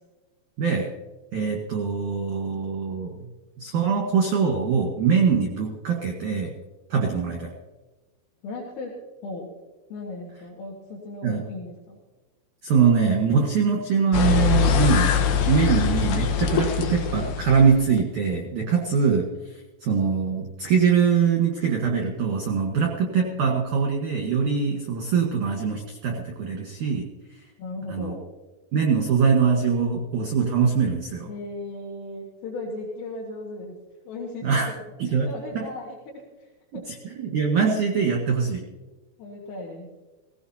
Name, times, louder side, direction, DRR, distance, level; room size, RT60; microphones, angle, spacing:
voice 1, 1.3-3.3 3.6-6.5 6.9-7.5 11.2-11.4 12.6-15.2 15.5-27.1 27.9-28.1 28.7-31.3 34.4-34.7 35.0-35.3 35.5-35.7 36.7-38.6, right 6 dB, 65° right, 0 dB, 2.1 m, -23 dB
voice 2, 8.4-9.0 9.2-9.5 9.9-12.0 27.6-28.3 31.3-33.8 34.1-34.8 35.1-36.5 36.7-36.9 39.2-39.9, left 2 dB, 90° left, -3 dB, 4.5 m, -36 dB
sound 1, 14.1-18.0, left 7 dB, 70° left, 3.3 m, -23 dB
18.5 x 17.0 x 2.8 m, 1.2 s
omnidirectional pair, 5.7 m